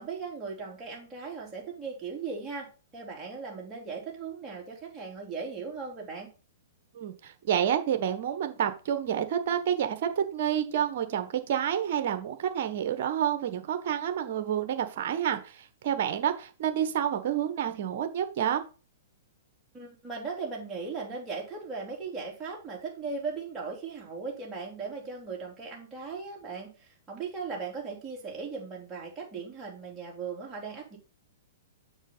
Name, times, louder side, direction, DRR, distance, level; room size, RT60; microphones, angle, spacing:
voice 1, 0.0-6.3 19.7-31.0, right 4 dB, 20° right, -3 dB, 3.6 m, -38 dB
voice 2, 6.9-18.6, right 9 dB, 55° right, 9 dB, 1.3 m, -29 dB
7.2 x 5.9 x 4.0 m, 0.34 s
figure-of-eight pair, 115°, 0 cm